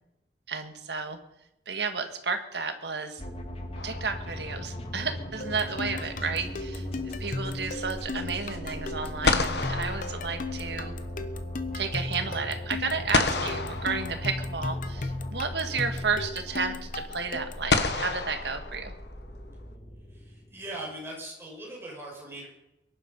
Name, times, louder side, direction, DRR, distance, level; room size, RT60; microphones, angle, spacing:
voice 1, 0.5-1.2 1.7-3.2 3.8-10.9 11.7-18.9, right 5 dB, 70° right, 7 dB, 1.8 m, -32 dB
sound 1, 3.2-20.9, left 1 dB, 35° left, 2.2 m, -38 dB
sound 2, 3.8-4.6 8.7-8.8 9.2-11.0 13.1-14.7 16.1-16.2 17.7-19.3, left 3 dB, 70° left, 1.5 m, -29 dB
sound 3, 5.4-17.7, left 3 dB, 50° left, 1.0 m, -36 dB
voice 2, 20.1-22.5, right 1 dB, 15° right, -3 dB, 6.1 m, -40 dB
22.5 x 11.0 x 5.4 m, 0.88 s
head